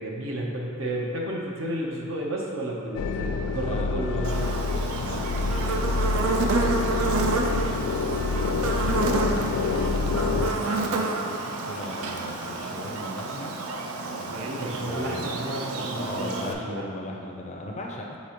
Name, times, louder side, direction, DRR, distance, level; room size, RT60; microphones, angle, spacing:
voice 1, 0.0-4.3 10.1-10.6 14.0-17.0, right 1 dB, 60° right, -2 dB, 0.9 m, -33 dB
sound 1, 2.9-10.5, left 4 dB, 90° left, 0.3 m, -27 dB
voice 2, 3.6-7.6 8.4-9.2 10.2-11.4 11.7-13.6 14.8-15.3 15.9-18.2, left 1 dB, 30° left, 0 dB, 0.5 m, -38 dB
Buzz, 4.2-16.5, right 3 dB, 75° right, 0.5 m, -29 dB
sound 2, 6.6-12.6, equal, 20° right, 0.5 m, -45 dB
8.4 x 4.3 x 3.0 m, 2.3 s
head